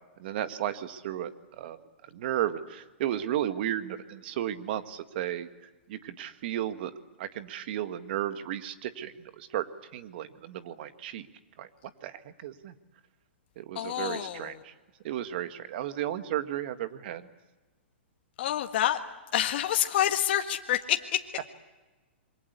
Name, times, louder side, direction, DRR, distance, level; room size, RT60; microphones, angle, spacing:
voice 1, 0.2-1.8 2.1-5.5 5.9-6.9 7.2-9.7 9.9-11.3 11.6-11.7 12.0-12.8 13.6-14.7 15.0-17.3, right 12 dB, 55° right, 10 dB, 1.8 m, -34 dB
voice 2, 13.7-14.5 18.4-19.0 19.3-21.2, left 11 dB, 60° left, 5 dB, 1.7 m, -27 dB
27.0 x 24.0 x 8.2 m, 1.2 s
hypercardioid pair, 130°, 6 cm